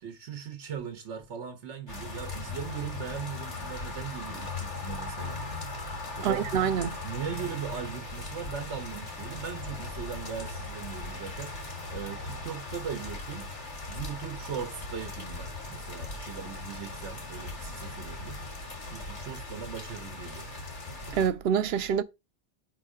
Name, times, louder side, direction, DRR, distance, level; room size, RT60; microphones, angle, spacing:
voice 1, 0.0-5.4 6.2-6.4 7.0-11.5 11.9-13.5 13.9-18.4 18.9-20.5, right 7 dB, 90° right, 1.2 m, -39 dB
sound 1, 1.9-21.3, left 2 dB, 90° left, 2.1 m, -38 dB
voice 2, 6.2-7.0 21.1-22.0, right 8 dB, 70° right, 0.8 m, -26 dB
5.3 x 4.0 x 4.9 m
omnidirectional pair, 1.2 m